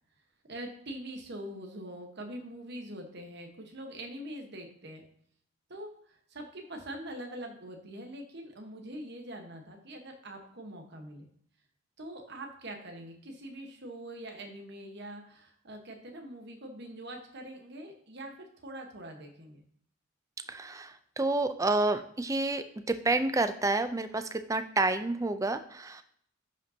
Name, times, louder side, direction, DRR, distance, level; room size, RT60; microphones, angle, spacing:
voice 1, 0.5-5.0 5.7-11.3 12.0-19.6, right 1 dB, 50° right, 3 dB, 1.1 m, -43 dB
voice 2, 20.5-26.0, right 2 dB, 15° right, 10 dB, 0.4 m, -29 dB
11.0 x 5.2 x 2.7 m, 0.67 s
head